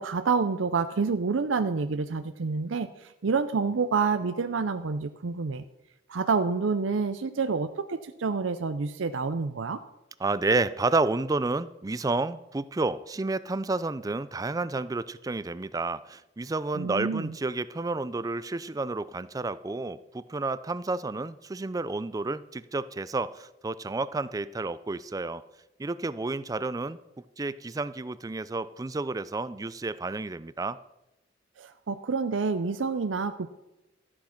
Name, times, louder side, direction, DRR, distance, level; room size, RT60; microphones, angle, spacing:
voice 1, 0.0-5.6 6.1-9.8 16.7-17.3 31.6-33.5, right 4 dB, 85° right, 10 dB, 0.5 m, -28 dB
voice 2, 10.2-25.4 25.8-27.0 27.4-30.8, right 3 dB, 20° right, 16 dB, 0.4 m, -30 dB
13.0 x 8.7 x 5.8 m, 0.95 s
head